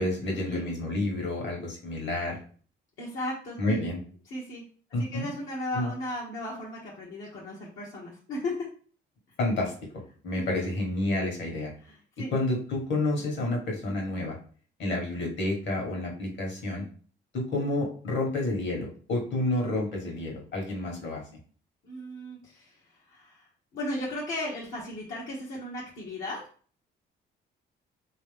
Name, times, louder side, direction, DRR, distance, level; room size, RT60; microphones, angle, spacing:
voice 1, 0.0-2.4 3.6-4.0 4.9-5.3 5.7-5.9 9.4-11.7 12.2-14.4 14.8-16.9 17.3-21.2, left 2 dB, 65° left, 0 dB, 1.5 m, -30 dB
voice 2, 3.0-3.8 4.3-4.6 5.0-8.7 10.3-10.7 11.8-12.3 21.8-26.4, left 1 dB, 80° left, -5 dB, 1.1 m, -36 dB
3.4 x 3.1 x 3.5 m, 0.43 s
cardioid pair, 90°, 20 cm